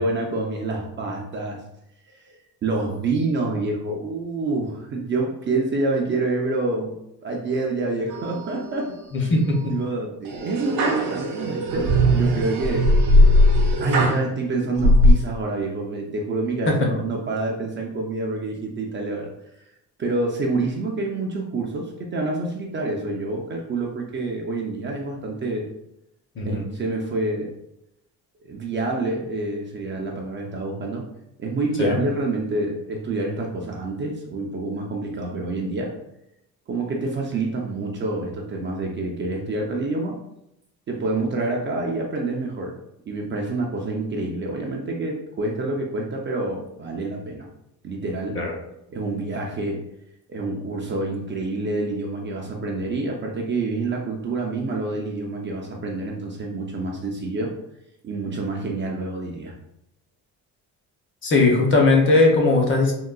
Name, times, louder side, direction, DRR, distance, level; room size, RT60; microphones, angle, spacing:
voice 1, 0.0-1.6 2.1-2.4 2.6-6.9 7.2-9.3 9.7-11.9 12.1-12.9 13.6-19.3 20.0-25.7 26.5-27.5 28.4-31.0 31.4-35.9 36.7-40.2 40.9-42.7 43.1-47.5 47.8-48.4 48.9-49.8 50.3-57.5 58.0-59.5, right 2 dB, 30° right, -1 dB, 0.4 m, -27 dB
sound 1, 8.1-8.8 9.2-9.7 10.3-14.2 14.8-15.1, left 1 dB, 70° right, 0.7 m, -18 dB
voice 2, 9.1-9.7 16.7-16.8 26.4-26.7 31.8-32.0 48.3-48.5 61.2-62.9, left 3 dB, 35° left, 0 dB, 0.7 m, -18 dB
3.7 x 2.1 x 2.3 m, 0.82 s
cardioid pair, 125°, 37 cm